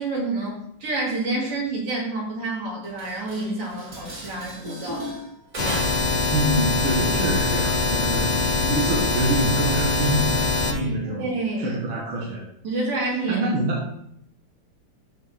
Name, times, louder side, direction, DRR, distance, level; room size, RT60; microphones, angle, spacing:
voice 1, 0.0-5.1 5.6-5.9 11.1-11.8 12.6-13.5, right 2 dB, 85° right, -4 dB, 4.0 m, -28 dB
Dishes pots and pans, 2.8-6.2, equal, 40° right, 2.8 m, -37 dB
sound 1, 5.6-10.7, left 3 dB, 50° left, 0.4 m, -23 dB
voice 2, 6.3-11.3 11.6-12.5 13.3-13.9, right 1 dB, 65° right, -3 dB, 2.4 m, -26 dB
13.5 x 5.0 x 4.4 m, 0.71 s
omnidirectional pair, 2.4 m